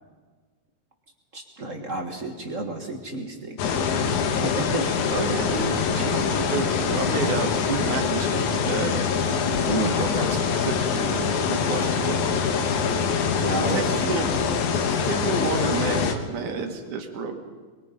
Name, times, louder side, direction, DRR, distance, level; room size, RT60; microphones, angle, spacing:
voice 1, 1.3-5.2 9.6-10.0 13.4-14.2 16.4-16.6, right 2 dB, 35° right, 3 dB, 1.5 m, -31 dB
sound 1, 3.6-16.1, left 6 dB, 80° left, 2.7 m, -24 dB
voice 2, 5.1-9.0 9.8-12.2 13.7-14.3 15.0-17.4, right 5 dB, 85° right, 4 dB, 3.3 m, -30 dB
23.0 x 23.0 x 5.3 m, 1.4 s
omnidirectional pair, 3.4 m